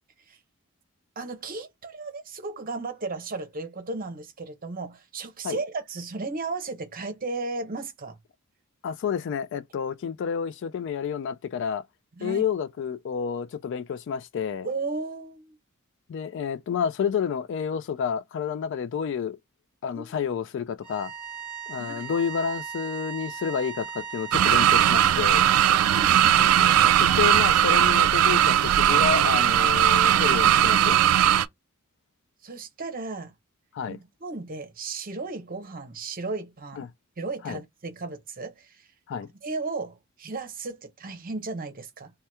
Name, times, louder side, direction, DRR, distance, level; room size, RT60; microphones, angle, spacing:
voice 1, 1.2-8.2 12.2-12.4 14.6-15.6 19.9-20.1 21.8-22.1 25.9-26.6 32.4-33.3 33.9-36.9 37.2-38.8 39.4-42.1, right 3 dB, 45° right, 0.7 m, -35 dB
voice 2, 8.8-11.8 12.2-14.7 16.1-19.4 19.8-21.1 21.7-25.5 26.8-30.9 33.7-34.0 36.8-36.9 37.4-37.6 39.1-39.3, left 7 dB, 60° left, 0.3 m, -29 dB
sound 1, 20.8-26.9, right 7 dB, 20° right, 1.1 m, -39 dB
sound 2, 24.3-31.5, right 11 dB, 90° right, 0.3 m, -19 dB
2.8 x 2.2 x 3.4 m
head